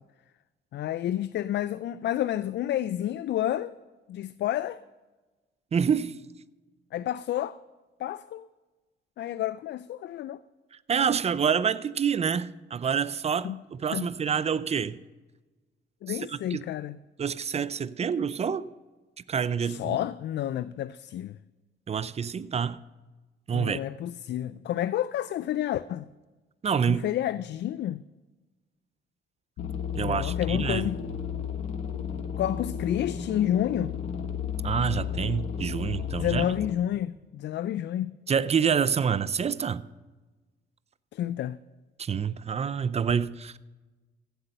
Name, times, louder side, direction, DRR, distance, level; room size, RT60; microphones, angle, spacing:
voice 1, 0.7-3.7 4.1-4.8 6.9-7.6 8.0-8.4 9.2-10.4 13.4-13.6 13.9-14.1 16.0-17.0 19.6-21.4 23.5-26.1 26.9-28.0 30.0-31.0 32.4-33.9 36.2-38.1 41.1-41.6, left 12 dB, 60° left, 0.4 m, -30 dB
voice 2, 5.7-6.2 10.9-15.0 16.1-16.6 17.2-18.7 19.3-20.0 21.9-22.8 23.5-23.8 26.6-27.0 29.9-30.9 34.6-36.5 38.3-39.8 42.0-43.5, right 7 dB, 35° right, 0.5 m, -27 dB
sound 1, 29.6-36.7, left 8 dB, 90° left, 1.4 m, -33 dB
15.0 x 8.0 x 5.5 m
cardioid pair, 90°, 20 cm